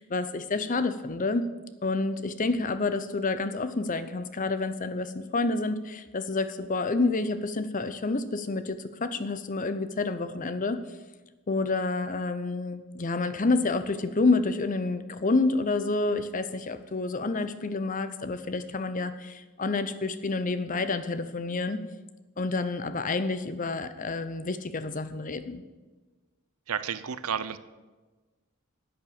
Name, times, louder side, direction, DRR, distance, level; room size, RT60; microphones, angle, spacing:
voice 1, 0.0-1.5 1.8-10.8 11.5-21.8 22.4-25.6, left 3 dB, 35° left, 12 dB, 0.7 m, -29 dB
voice 2, 26.7-27.6, right 7 dB, 80° right, 14 dB, 0.7 m, -31 dB
10.5 x 8.8 x 7.0 m, 1.2 s
head